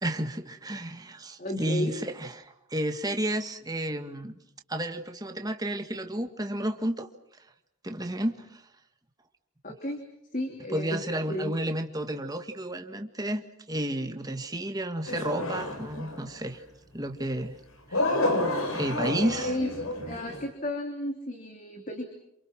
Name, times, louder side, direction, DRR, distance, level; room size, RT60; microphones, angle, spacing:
voice 1, 0.0-4.3 4.7-7.1 7.8-8.6 10.7-13.4 13.7-16.6 16.9-17.6 17.9-18.0 18.7-19.5, right 1 dB, 15° right, 6 dB, 1.8 m, -31 dB
voice 2, 1.4-1.9 9.6-10.0 10.3-11.0 11.3-11.5 19.0-19.7 20.0-22.1, left 1 dB, 35° left, 4 dB, 3.1 m, -33 dB
sound 1, 15.1-16.3 17.9-20.5, left 1 dB, 80° left, 5.3 m, -29 dB
28.5 x 27.5 x 6.0 m, 0.77 s
head